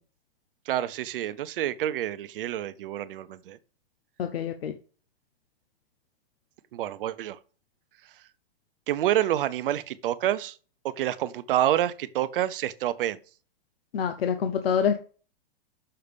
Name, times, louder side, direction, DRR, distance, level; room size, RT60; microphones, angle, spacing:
voice 1, 0.7-3.6 6.7-7.4 8.9-10.6 10.8-13.2, right 12 dB, 65° right, 0.8 m, -28 dB
voice 2, 4.2-4.7 13.9-15.0, left 7 dB, 85° left, 1.0 m, -26 dB
6.7 x 5.7 x 5.2 m
hypercardioid pair, 140°, 29 cm